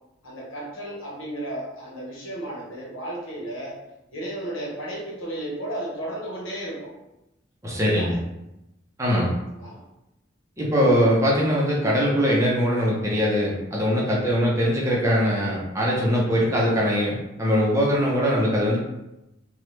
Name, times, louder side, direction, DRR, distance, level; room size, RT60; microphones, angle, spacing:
voice 1, 0.2-3.8 4.1-6.9 7.7-8.2 9.6-9.8 13.8-14.1, right 1 dB, 85° left, -4 dB, 1.1 m, -34 dB
voice 2, 7.6-8.2 9.0-9.3 10.6-18.8, equal, 15° right, -4 dB, 0.6 m, -21 dB
3.0 x 2.3 x 3.1 m, 0.91 s
head